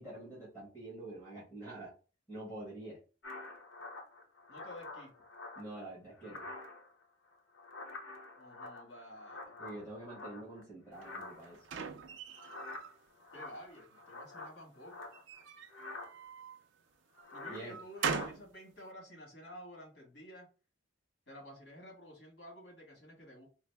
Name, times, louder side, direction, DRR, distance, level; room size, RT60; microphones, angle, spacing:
voice 1, 0.0-1.9 2.3-3.0 5.5-6.5 9.6-11.7 17.5-17.8, right 2 dB, 10° left, -9 dB, 1.5 m, -46 dB
sound 1, 3.2-5.8 6.2-7.0 7.3-10.6 10.9-11.7 12.3-15.4 15.7-16.1 17.2-17.6 17.9-18.3, left 3 dB, 70° left, 0.8 m, -48 dB
voice 2, 4.5-5.1 8.4-9.6 13.3-15.0 17.3-20.5 21.3-23.5, equal, 55° left, -1 dB, 1.7 m, -51 dB
sound 2, 11.0-12.9 13.4-14.1 15.1-16.6 17.2-18.5, right 6 dB, 70° right, 0.4 m, -41 dB
4.0 x 2.0 x 3.4 m, 0.35 s
head